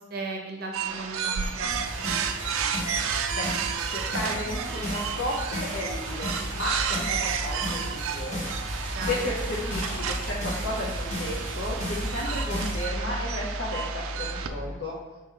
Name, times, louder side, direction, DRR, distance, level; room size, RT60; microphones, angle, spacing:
voice 1, 0.0-1.7 1.9-2.2 8.9-9.3, right 3 dB, 45° right, 2 dB, 0.6 m, -36 dB
sound 1, 0.7-14.5, right 7 dB, 85° right, 0.4 m, -32 dB
sound 2, 0.8-14.8, equal, 10° left, 0.7 m, -38 dB
sound 3, 1.7-12.8, equal, 35° left, 1.3 m, -35 dB
voice 2, 3.8-8.5 9.1-15.0, left 1 dB, 60° left, -4 dB, 0.7 m, -33 dB
4.3 x 3.0 x 3.7 m, 1.2 s
head